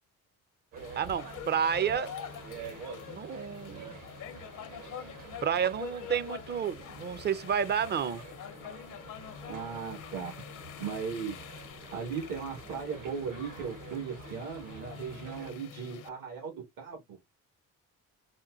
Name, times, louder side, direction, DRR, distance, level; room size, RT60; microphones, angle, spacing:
sound 1, 0.7-15.5, right 6 dB, 65° right, 1.1 m, -48 dB
sound 2, 0.8-16.1, left 9 dB, 65° left, 0.7 m, -46 dB
voice 1, 1.0-2.1 3.1-4.0 5.4-8.2, right 7 dB, 30° right, 0.4 m, -30 dB
voice 2, 9.4-11.4 11.9-17.2, right 6 dB, 80° right, 1.7 m, -38 dB
4.3 x 2.1 x 2.4 m
cardioid pair, 70°, 33 cm